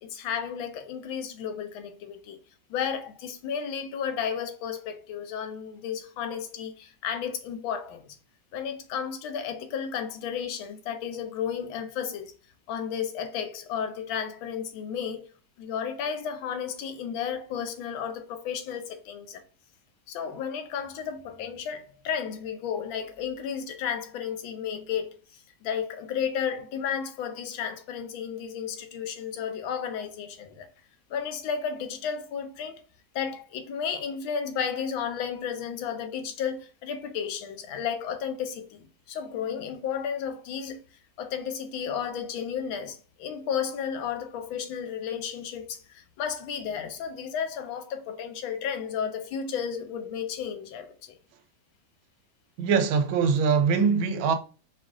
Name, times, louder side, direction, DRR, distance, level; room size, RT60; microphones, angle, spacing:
voice 1, 0.0-2.4 2.7-8.0 8.5-12.3 12.7-15.3 15.6-19.4 20.1-30.7 31.1-32.8 33.1-40.8 41.2-51.2, left 7 dB, 80° left, 1.5 m, -33 dB
voice 2, 52.6-54.3, right 5 dB, 90° right, 1.4 m, -22 dB
5.2 x 2.5 x 3.5 m
omnidirectional pair, 2.2 m